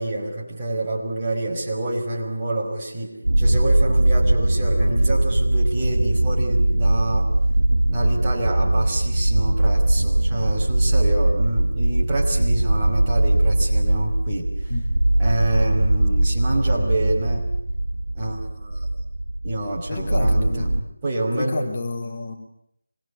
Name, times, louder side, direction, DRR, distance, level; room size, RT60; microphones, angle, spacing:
voice 1, 0.0-7.3 7.9-14.7 15.2-17.5 18.1-18.9 19.4-21.6, right 1 dB, 15° right, -5 dB, 5.5 m, -27 dB
sound 1, 3.2-20.8, right 1 dB, 90° right, 1.5 m, -20 dB
voice 2, 19.9-20.7 21.3-22.3, left 2 dB, 35° left, 0 dB, 2.9 m, -29 dB
26.0 x 22.0 x 8.4 m, 0.74 s
figure-of-eight pair, 165°, 0 cm